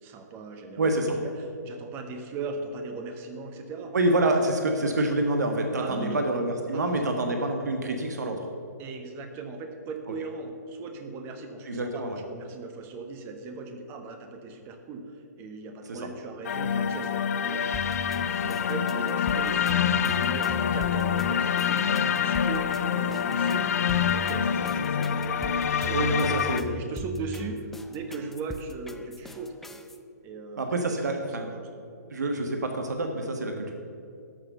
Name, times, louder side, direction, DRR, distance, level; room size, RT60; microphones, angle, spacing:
voice 1, 0.0-3.9 5.8-6.3 6.7-7.2 8.8-18.0 18.4-22.7 22.9-23.8 24.1-29.5 30.2-31.7, right 4 dB, 25° right, 6 dB, 1.2 m, -39 dB
voice 2, 0.8-1.2 3.9-8.4 11.6-12.2 15.9-16.0 25.9-26.8 30.6-31.5 32.1-33.7, right 2 dB, 70° right, 4 dB, 1.4 m, -27 dB
sound 1, 16.4-26.6, left 8 dB, 55° left, 0.6 m, -26 dB
sound 2, 17.7-30.0, equal, 5° left, 0.4 m, -40 dB
12.5 x 6.5 x 6.8 m, 2.5 s
figure-of-eight pair, 135°, 10 cm